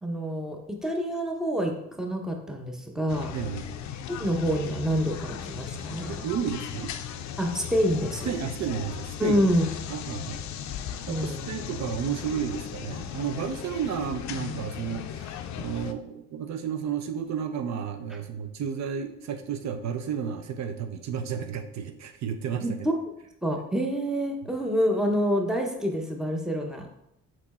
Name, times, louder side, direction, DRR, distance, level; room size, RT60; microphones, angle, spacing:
voice 1, 0.0-3.4 4.1-6.3 7.4-8.3 9.2-9.7 11.1-11.5 22.6-23.0 23.4-26.9, equal, ahead, 2 dB, 0.7 m, -27 dB
sound 1, 3.1-15.9, left 8 dB, 70° left, 0.4 m, -37 dB
voice 2, 3.3-3.7 6.1-6.9 8.3-9.4 9.9-10.4 11.1-22.8, right 7 dB, 65° right, 7 dB, 0.5 m, -32 dB
4.2 x 3.1 x 4.1 m, 0.79 s
cardioid pair, 90°, 30 cm